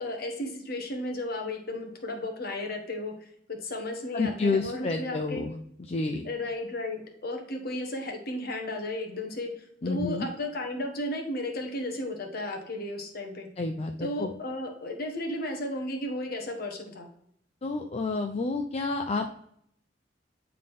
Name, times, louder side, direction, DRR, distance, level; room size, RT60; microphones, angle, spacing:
voice 1, 0.0-3.1 3.5-5.5 6.2-13.5 14.0-17.1, left 1 dB, 55° left, 3 dB, 1.3 m, -34 dB
voice 2, 4.1-5.6 5.9-6.3 9.8-10.3 13.6-14.3 17.6-19.4, left 3 dB, 35° left, 4 dB, 0.4 m, -29 dB
8.6 x 3.8 x 3.6 m, 0.69 s
head